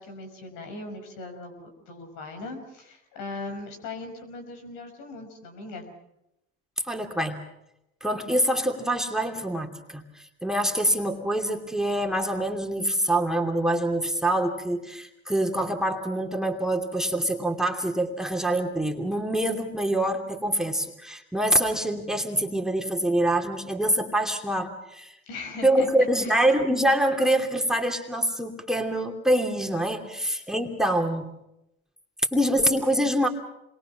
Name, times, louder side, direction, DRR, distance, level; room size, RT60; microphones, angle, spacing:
voice 1, 0.0-5.9 25.3-26.3, left 3 dB, 75° left, 6 dB, 5.7 m, -39 dB
voice 2, 6.9-7.5 8.0-10.0 10.4-25.2 25.6-31.3 32.3-33.3, right 1 dB, ahead, 5 dB, 2.7 m, -25 dB
27.5 x 22.0 x 6.0 m, 0.86 s
supercardioid pair, 85°, 32 cm